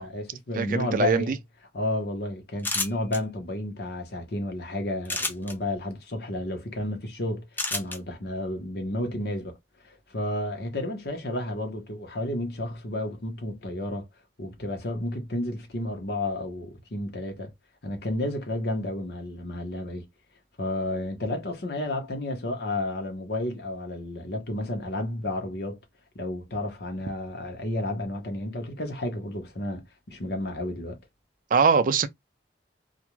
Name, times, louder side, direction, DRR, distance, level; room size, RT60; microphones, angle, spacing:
voice 1, 0.0-1.4 1.7-9.6 9.8-14.1 14.4-17.5 17.8-20.0 20.6-25.8 26.1-31.0, left 1 dB, 65° left, 0.9 m, -31 dB
voice 2, 0.6-1.4 31.5-32.1, right 5 dB, 50° right, 0.3 m, -22 dB
sound 1, 2.6-3.2 5.0-5.5 7.6-8.0, left 2 dB, 10° left, 0.5 m, -28 dB
2.5 x 2.3 x 2.9 m
head